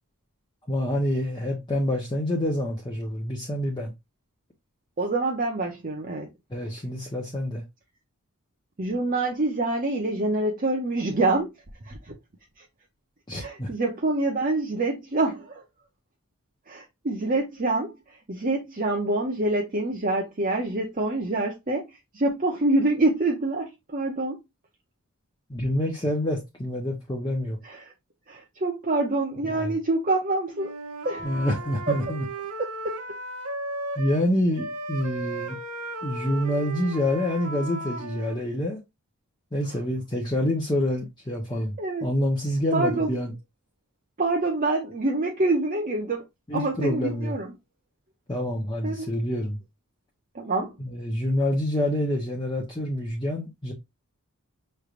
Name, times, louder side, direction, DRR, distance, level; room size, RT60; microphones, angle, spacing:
voice 1, 0.7-3.9 6.5-7.6 13.3-13.7 25.5-27.6 29.4-29.8 31.2-32.2 34.0-35.6 36.0-38.8 39.5-41.7 42.0-43.3 46.5-47.4 48.3-49.6 50.8-53.7, left 1 dB, 20° left, 0.9 m, -27 dB
voice 2, 5.0-6.3 8.8-11.5 11.8-12.1 12.6-12.7 13.4-15.6 16.7-24.4 27.6-27.9 28.3-30.7 31.0-31.5 32.6-32.9 41.8-42.1 42.7-43.1 44.2-46.3 46.5-47.5 48.8-49.1 50.3-50.8, right 2 dB, 40° right, 0.7 m, -26 dB
Wind instrument woodwind instrument, 30.5-34.2 34.5-38.4, right 2 dB, 85° right, 1.2 m, -35 dB
6.2 x 3.3 x 2.5 m
head